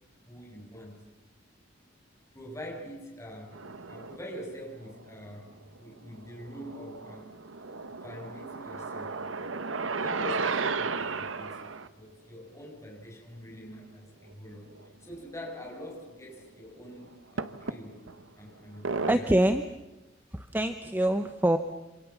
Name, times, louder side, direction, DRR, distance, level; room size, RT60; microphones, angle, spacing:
voice 1, 0.2-1.0 2.3-3.6 3.9-5.5 5.8-7.4 8.0-9.2 10.0-11.7 12.0-18.0 18.4-19.3, equal, 15° left, 0 dB, 7.7 m, -44 dB
sound 1, 3.5-4.2 4.9-5.8 6.2-11.9 14.3-14.4 14.7-14.9 15.7-15.8 17.4-18.2 18.8-19.1, right 4 dB, 85° right, 1.2 m, -34 dB
voice 2, 19.1-19.7 20.3-21.6, right 1 dB, 10° right, 9 dB, 0.9 m, -25 dB
27.5 x 27.0 x 7.2 m, 1.0 s
head